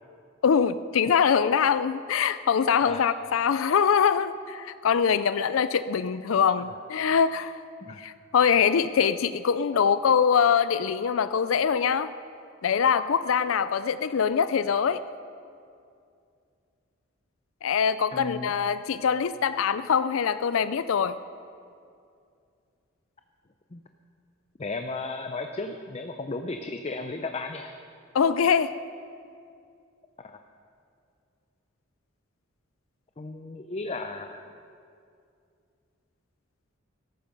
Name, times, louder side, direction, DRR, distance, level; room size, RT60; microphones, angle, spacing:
voice 1, 0.4-7.5 8.0-12.1 12.6-15.0 17.6-21.2 28.1-28.7, left 7 dB, 85° left, 13 dB, 0.4 m, -23 dB
voice 2, 18.1-18.5 23.7-23.8 24.6-27.7 30.2-30.4 33.2-34.4, left 3 dB, 30° left, 6 dB, 0.6 m, -34 dB
17.0 x 13.5 x 5.3 m, 2.4 s
head